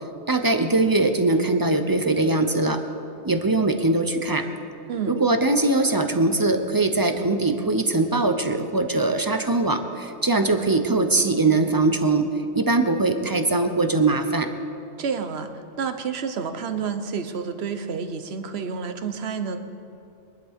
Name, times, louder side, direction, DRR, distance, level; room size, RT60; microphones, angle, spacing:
voice 1, 0.3-2.8 3.2-4.4 5.1-12.3 12.5-14.5, right 2 dB, 25° right, 7 dB, 0.5 m, -21 dB
voice 2, 4.9-5.2 15.0-19.6, right 6 dB, 55° right, 8 dB, 1.1 m, -29 dB
23.0 x 11.5 x 3.6 m, 2.7 s
omnidirectional pair, 1.4 m